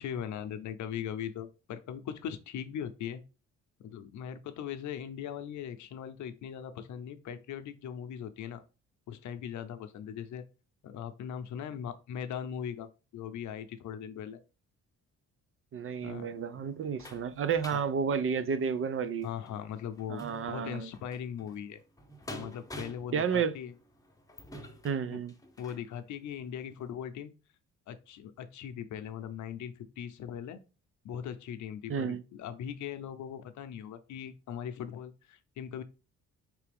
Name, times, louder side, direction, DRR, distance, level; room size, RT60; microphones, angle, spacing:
voice 1, 0.0-3.2 3.8-8.6 9.1-10.4 10.8-14.4 16.0-16.3 17.7-17.8 19.2-21.8 22.3-23.7 25.1-25.2 25.6-27.3 27.9-30.6 31.0-35.8, left 9 dB, 70° left, 0.7 m, -40 dB
voice 2, 15.7-19.3 20.1-20.9 23.1-23.6 24.8-25.3 31.9-32.2, right 6 dB, 45° right, 0.6 m, -31 dB
sound 1, 16.0-25.9 26.4-26.5 26.9-27.0, equal, 10° left, 0.8 m, -49 dB
4.5 x 3.4 x 3.4 m
cardioid pair, 90°, 30 cm